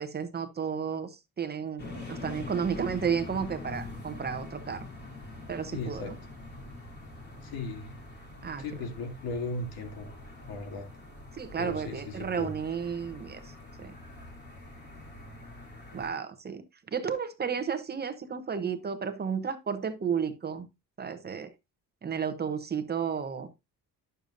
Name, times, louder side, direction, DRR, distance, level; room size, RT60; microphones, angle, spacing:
voice 1, 0.0-4.9 5.5-6.1 8.4-8.6 11.3-13.5 13.8-13.9 15.9-16.6 16.9-20.7 21.0-21.5 22.0-23.5, right 7 dB, 25° right, 0.8 m, -32 dB
sound 1, 1.8-16.1, left 2 dB, 30° left, 2.7 m, -44 dB
voice 2, 5.7-6.1 7.4-7.9 8.6-10.1 10.5-10.9 11.6-12.5, left 3 dB, 80° left, 2.6 m, -37 dB
10.5 x 6.8 x 2.5 m
cardioid pair, 160°, 36 cm